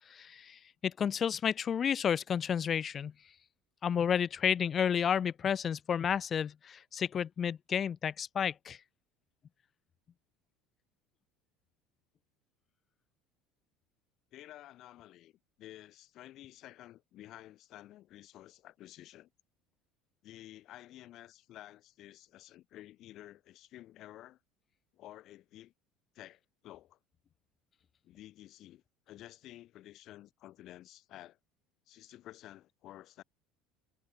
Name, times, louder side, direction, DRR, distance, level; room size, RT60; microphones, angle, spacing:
voice 1, 0.1-3.1 3.8-8.8, left 8 dB, 40° left, 0.4 m, -31 dB
voice 2, 14.3-19.3 20.2-24.4 24.9-25.7 26.1-27.0 28.0-31.4 31.9-33.2, left 14 dB, 55° left, 2.1 m, -52 dB
hypercardioid pair, 70°, 0 cm